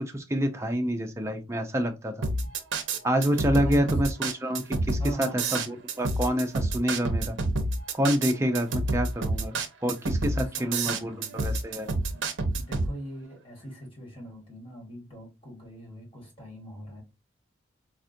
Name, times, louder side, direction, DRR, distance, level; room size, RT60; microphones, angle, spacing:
voice 1, 0.0-2.3 3.0-7.4 7.9-9.5 9.8-11.9, equal, 15° right, 0.4 m, -27 dB
sound 1, 2.2-12.9, right 2 dB, 70° right, 0.6 m, -28 dB
voice 2, 3.6-4.0 5.0-5.8 10.2-11.4 12.1-12.2 12.5-17.0, equal, 25° left, 1.7 m, -41 dB
4.3 x 2.4 x 2.6 m
head